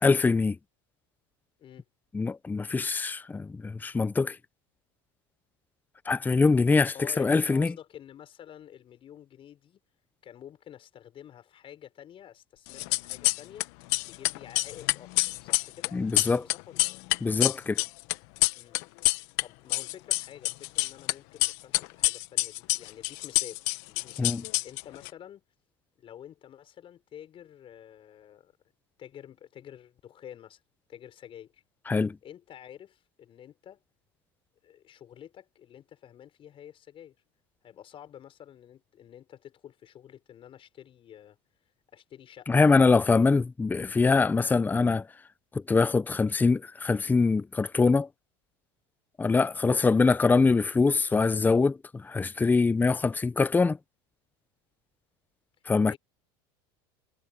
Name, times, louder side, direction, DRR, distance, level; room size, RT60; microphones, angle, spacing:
voice 1, 0.0-0.6 2.1-4.4 6.1-7.7 15.9-16.4 17.2-17.8 24.2-24.4 31.9-32.2 42.5-45.1 45.7-48.1 49.2-53.8 55.7-55.9, left 4 dB, 15° left, 0.7 m, -23 dB
voice 2, 6.9-9.8 10.2-13.7 14.0-17.0 18.6-18.8 19.4-23.6 23.9-25.4 26.0-28.5 29.0-30.6 30.9-31.6 32.2-33.8 34.6-37.1 37.6-41.4 41.9-42.6 53.0-53.2 55.8-56.0, left 10 dB, 40° left, 6.6 m, -49 dB
sound 1, 12.7-13.6 13.9-19.4 19.7-21.1 21.4-25.1, left 23 dB, 70° left, 1.5 m, -26 dB
supercardioid pair, 105°, 14 cm